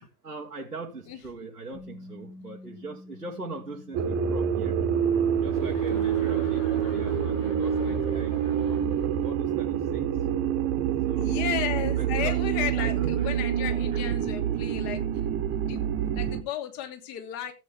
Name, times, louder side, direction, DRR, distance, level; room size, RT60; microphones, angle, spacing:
voice 1, 0.0-5.0 5.4-10.3 11.0-11.5 12.0-12.4 12.8-13.4 13.9-14.1, right 3 dB, 85° right, 1.5 m, -41 dB
Bass guitar, 1.7-8.0, left 2 dB, 75° left, 7.9 m, -50 dB
sound 1, 3.9-16.4, right 9 dB, 30° right, 1.5 m, -27 dB
Chuckle chortle, 5.5-9.2, left 6 dB, 55° left, 2.6 m, -47 dB
voice 2, 11.1-15.0 15.6-15.8 16.1-17.5, left 10 dB, 40° left, 2.8 m, -34 dB
14.0 x 8.4 x 3.5 m
figure-of-eight pair, 95°, 45 cm